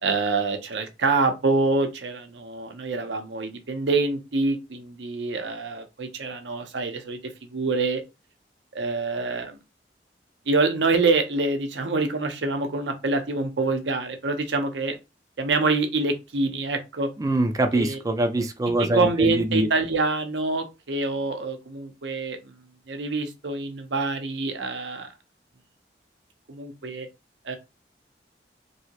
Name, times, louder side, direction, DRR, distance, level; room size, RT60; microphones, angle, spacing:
voice 1, 0.0-8.0 8.7-9.6 10.5-15.0 15.4-17.1 17.7-18.0 18.4-18.5 18.8-22.5 22.9-25.1 26.5-27.1 27.4-27.6, right 3 dB, 75° right, 0.7 m, -26 dB
voice 2, 17.2-19.7, right 1 dB, 20° right, 0.4 m, -24 dB
3.0 x 2.8 x 2.9 m
head